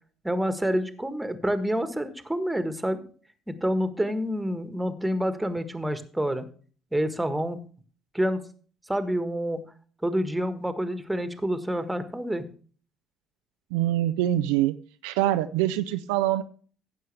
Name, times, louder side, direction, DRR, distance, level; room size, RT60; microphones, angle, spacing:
voice 1, 0.2-3.0 3.5-6.4 6.9-7.6 8.1-8.4 8.9-9.6 10.0-12.4, equal, 10° right, 11 dB, 1.5 m, -28 dB
voice 2, 13.7-14.7 15.0-16.4, right 13 dB, 65° right, 10 dB, 0.5 m, -24 dB
15.5 x 7.4 x 3.4 m, 0.42 s
figure-of-eight pair, 50°, 0 cm